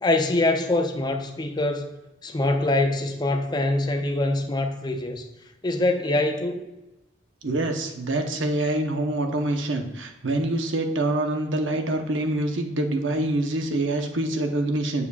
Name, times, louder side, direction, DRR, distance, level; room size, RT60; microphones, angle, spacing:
voice 1, 0.0-1.9 2.2-5.2 5.6-6.6, left 2 dB, 20° left, 0.5 m, -24 dB
voice 2, 7.4-15.1, right 2 dB, 90° right, 0.9 m, -25 dB
7.1 x 6.8 x 2.4 m
head